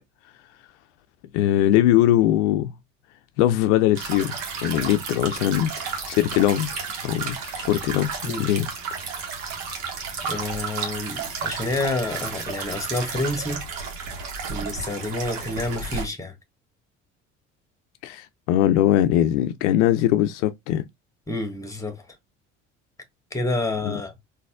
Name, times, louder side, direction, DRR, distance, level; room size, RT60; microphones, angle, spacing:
voice 1, 1.3-2.7 3.4-8.7 18.0-20.8 23.8-24.0, left 12 dB, 65° left, 0.5 m, -21 dB
sound 1, 4.0-16.0, right 5 dB, 70° right, 1.3 m, -32 dB
voice 2, 10.2-13.6 14.5-16.3 21.3-22.1 23.3-24.1, left 2 dB, 10° left, 1.3 m, -28 dB
4.0 x 2.6 x 2.2 m
figure-of-eight pair, 55°, 37 cm